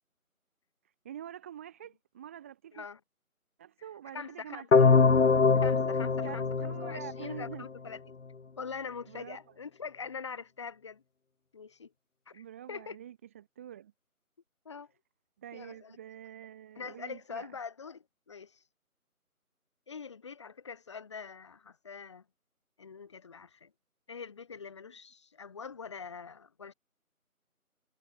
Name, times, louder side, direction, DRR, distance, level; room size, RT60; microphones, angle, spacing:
voice 1, 1.0-2.9 3.6-4.9 6.2-7.7 9.1-9.4 12.3-13.9 15.4-17.5, right 10 dB, 10° right, 4.9 m, -46 dB
voice 2, 4.1-4.7 5.6-6.4 6.8-8.0 8.6-11.0 11.5-11.9 12.3-13.0 14.7-14.9 15.5-16.0 16.8-18.6 19.9-22.2 22.8-23.7 24.1-26.7, left 5 dB, 20° left, 7.0 m, -43 dB
sound 1, 4.7-7.7, left 4 dB, 55° left, 0.6 m, -24 dB
figure-of-eight pair, 175°, 44 cm